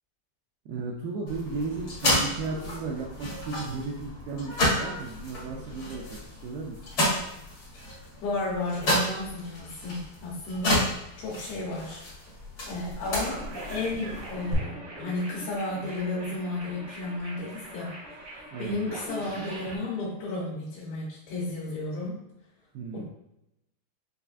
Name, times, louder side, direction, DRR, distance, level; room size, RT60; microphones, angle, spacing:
voice 1, 0.7-6.8 18.5-18.8 22.7-23.0, right 4 dB, 85° right, -4 dB, 2.4 m, -35 dB
sound 1, 1.3-14.5, left 1 dB, 65° left, 0.9 m, -31 dB
voice 2, 7.8-10.9 11.2-12.0 12.6-22.1 22.9-23.0, left 2 dB, 90° left, -6 dB, 2.8 m, -33 dB
sound 2, 13.0-19.8, right 1 dB, 65° right, 1.3 m, -42 dB
6.6 x 2.4 x 2.4 m, 0.83 s
omnidirectional pair, 4.3 m